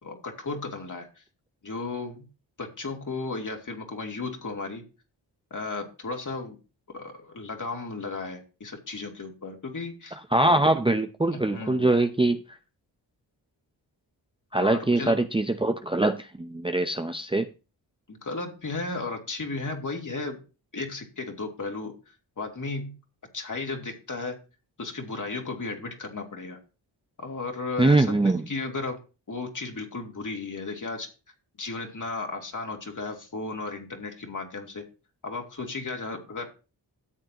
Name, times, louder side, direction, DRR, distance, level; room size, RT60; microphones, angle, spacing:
voice 1, 0.0-1.2 1.6-2.3 2.6-4.8 5.5-6.6 6.9-10.2 11.3-11.9 14.6-15.2 18.1-20.4 20.7-22.9 23.3-24.4 24.8-26.6 27.2-29.0 29.3-31.1 31.6-34.9 35.2-36.5, left 3 dB, 45° left, 2 dB, 2.8 m, -34 dB
voice 2, 10.3-12.4 14.5-17.5 27.8-28.4, right 2 dB, 10° right, 7 dB, 0.7 m, -23 dB
13.5 x 7.7 x 3.0 m, 0.32 s
cardioid pair, 60°, 45 cm